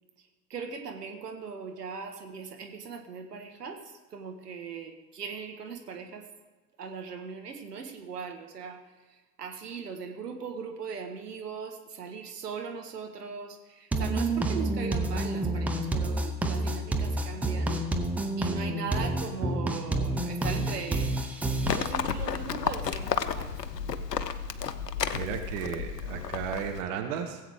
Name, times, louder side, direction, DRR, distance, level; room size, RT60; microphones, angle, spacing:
voice 1, 0.5-3.8 4.1-6.2 6.8-8.8 9.4-17.8 18.4-21.1 21.8-23.5, right 6 dB, 70° right, 4 dB, 1.5 m, -39 dB
sound 1, 13.9-21.9, right 2 dB, 5° right, 0.4 m, -29 dB
Livestock farm animals working animals, 21.6-26.8, left 7 dB, 75° left, 0.7 m, -32 dB
voice 2, 25.1-27.4, right 8 dB, 50° right, 5 dB, 1.2 m, -34 dB
17.0 x 8.1 x 3.6 m, 1.2 s
figure-of-eight pair, 80°, 49 cm